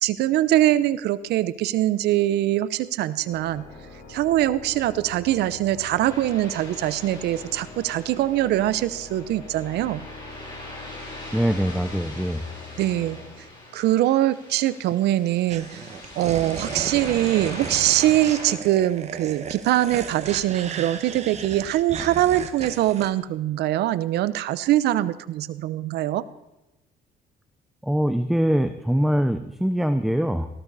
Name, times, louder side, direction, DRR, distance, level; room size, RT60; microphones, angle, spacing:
voice 1, 0.0-3.7 4.1-10.1 12.8-13.2 13.7-15.8 16.2-26.2, right 14 dB, 75° right, 15 dB, 0.8 m, -23 dB
Organ, 3.1-14.1, left 3 dB, 60° left, 4.5 m, -43 dB
sound 1, 6.0-18.5, left 1 dB, 30° left, 7.7 m, -42 dB
voice 2, 11.3-12.4 27.8-30.5, equal, ahead, 9 dB, 0.7 m, -23 dB
sound 2, 15.5-23.1, right 6 dB, 40° right, 1.5 m, -35 dB
18.0 x 15.5 x 4.1 m, 1.0 s
cardioid pair, 110°, 17 cm